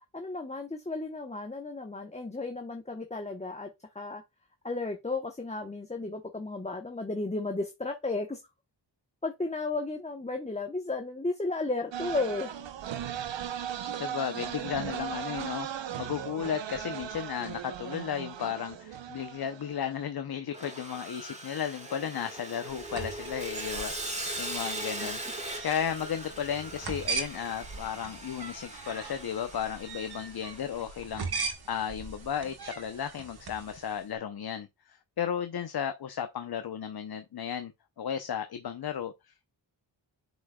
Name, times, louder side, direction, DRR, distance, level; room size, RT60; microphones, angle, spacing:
voice 1, 0.1-3.7 3.9-4.2 4.6-8.4 9.2-12.5, left 3 dB, 15° left, 1.0 m, -33 dB
sound 1, 11.9-20.1, right 10 dB, 80° right, 0.9 m, -37 dB
voice 2, 14.0-23.9 24.4-37.7 38.0-39.6, left 8 dB, 55° left, 0.8 m, -34 dB
Sawing, 20.5-30.8, right 1 dB, 15° right, 1.8 m, -40 dB
sound 2, 22.7-34.0, right 4 dB, 60° right, 1.7 m, -40 dB
8.0 x 5.1 x 2.3 m
cardioid pair, 70°, 44 cm